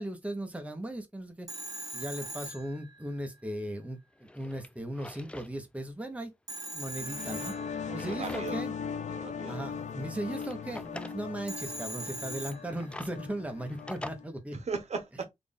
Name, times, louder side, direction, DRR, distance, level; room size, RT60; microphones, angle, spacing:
voice 1, 0.0-1.5 1.9-6.3 6.7-7.5 7.9-8.7 9.5-14.6, right 1 dB, 10° right, 1.0 m, -37 dB
Telephone, 1.5-3.4 6.5-8.3 11.5-13.1, right 2 dB, 30° right, 1.3 m, -41 dB
Drawer open or close, 3.5-3.6 4.1-5.5 5.9-6.0 7.0-8.8 9.2-9.3 10.0-11.2 12.4-14.1, left 1 dB, 10° left, 0.4 m, -46 dB
sound 1, 6.9-14.2, left 6 dB, 70° left, 0.5 m, -39 dB
voice 2, 7.8-8.7 9.1-9.6 14.5-15.2, right 4 dB, 65° right, 1.0 m, -38 dB
4.0 x 2.5 x 3.5 m
wide cardioid pair, 90°, 12 cm